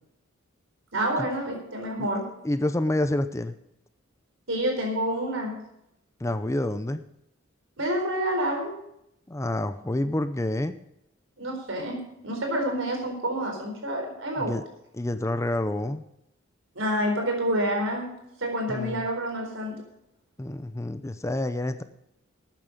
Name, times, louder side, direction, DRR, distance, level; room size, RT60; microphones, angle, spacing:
voice 1, 0.9-2.2 4.5-5.5 7.8-8.8 11.4-14.5 16.8-18.1 18.4-19.8, right 1 dB, 70° right, 2 dB, 4.2 m, -28 dB
voice 2, 2.4-3.5 6.2-7.0 9.3-10.7 14.4-14.6 14.9-16.0 18.7-19.1 20.4-21.8, left 1 dB, 15° left, 11 dB, 0.5 m, -28 dB
13.5 x 9.0 x 5.2 m, 0.80 s
head